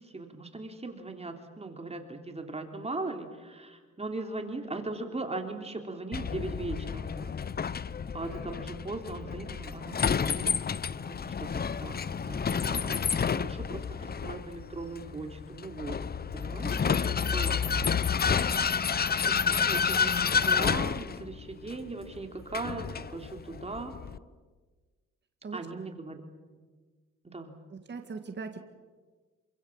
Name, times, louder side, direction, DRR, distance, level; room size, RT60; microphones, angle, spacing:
voice 1, 0.1-7.3 8.1-16.0 16.3-17.6 19.2-24.0 25.5-26.2 27.2-27.6, right 2 dB, 20° right, 4 dB, 3.4 m, -39 dB
Vehicle, 6.1-24.2, left 6 dB, 30° left, 0.8 m, -30 dB
voice 2, 27.7-28.6, right 4 dB, 35° right, 5 dB, 2.0 m, -39 dB
27.5 x 25.0 x 7.4 m, 1.4 s
cardioid pair, 90°, 30 cm